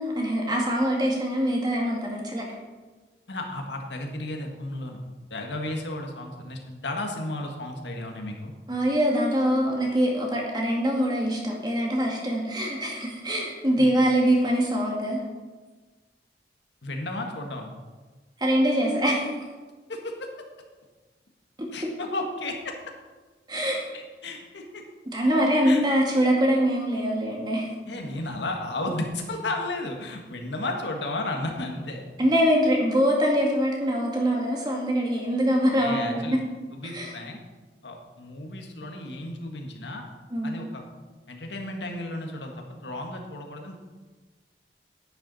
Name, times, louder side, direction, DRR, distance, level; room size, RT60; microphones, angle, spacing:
voice 1, 0.0-2.5 8.7-15.2 18.4-19.3 23.5-23.9 25.1-27.7 32.2-36.4 36.8-37.1 40.3-40.5, equal, 25° right, -1 dB, 2.0 m, -24 dB
voice 2, 3.3-5.0 5.3-8.5 13.8-13.9 16.8-17.7 19.9-20.3 21.7-22.7 23.9-24.8 25.6-25.8 27.9-32.0 35.7-36.4 36.7-37.4 37.8-40.0 40.4-40.8 41.3-43.7, left 2 dB, 90° left, 2 dB, 1.6 m, -33 dB
10.0 x 9.9 x 4.2 m, 1.3 s
head